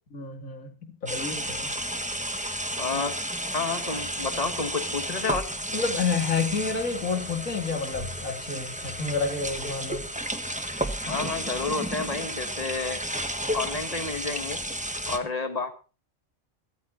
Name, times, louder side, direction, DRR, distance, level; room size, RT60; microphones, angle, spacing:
voice 1, 0.1-1.7 2.9-3.0 5.7-10.0 11.1-11.3, left 4 dB, 80° left, 5 dB, 3.0 m, -30 dB
sound 1, 1.1-15.2, right 1 dB, 5° right, 1.2 m, -32 dB
voice 2, 2.8-3.2 3.5-5.5 11.1-13.0 13.5-14.6 15.1-15.7, left 4 dB, 30° left, 8 dB, 1.7 m, -30 dB
15.5 x 13.5 x 3.9 m, 0.35 s
omnidirectional pair, 1.4 m